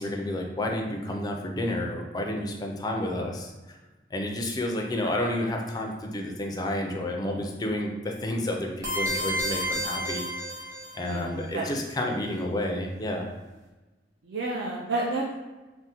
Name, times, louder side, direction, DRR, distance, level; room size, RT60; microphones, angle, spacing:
voice 1, 0.0-3.5 4.1-10.2 10.9-13.3, left 1 dB, 20° left, 1 dB, 0.3 m, -30 dB
sound 1, 8.8-11.2, equal, 20° right, 0.8 m, -30 dB
voice 2, 11.0-11.6 14.3-15.4, right 2 dB, 65° right, -3 dB, 0.4 m, -30 dB
3.4 x 2.0 x 2.8 m, 1.2 s
head